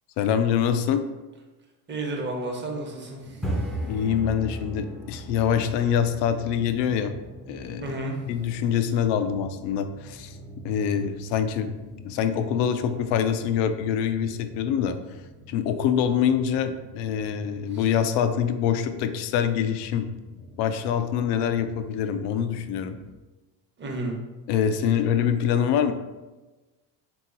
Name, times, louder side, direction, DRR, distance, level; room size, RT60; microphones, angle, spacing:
voice 1, 0.2-1.1 3.8-7.1 7.5-7.9 8.3-10.4 10.6-11.7 12.0-15.0 15.5-20.1 20.6-23.0 24.5-25.9, left 8 dB, 75° left, 9 dB, 0.5 m, -25 dB
voice 2, 1.9-3.8 7.8-8.2 17.7-17.9 23.8-24.2 24.8-24.9, right 2 dB, 25° right, 0 dB, 0.9 m, -33 dB
sound 1, 3.2-23.1, right 1 dB, ahead, 0.5 m, -40 dB
3.7 x 2.9 x 3.8 m, 1.2 s
cardioid pair, 110°, 41 cm